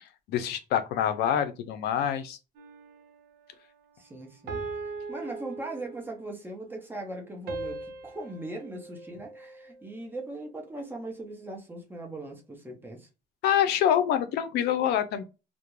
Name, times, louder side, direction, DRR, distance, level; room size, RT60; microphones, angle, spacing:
voice 1, 0.0-2.4 13.4-15.2, left 9 dB, 75° left, 0.4 m, -26 dB
sound 1, 2.5-3.2 4.5-6.3 7.5-9.9, right 3 dB, 70° right, 0.5 m, -39 dB
voice 2, 4.0-4.7 5.1-13.1, right 2 dB, 10° right, 0.7 m, -39 dB
2.3 x 2.1 x 3.0 m
cardioid pair, 110°, 17 cm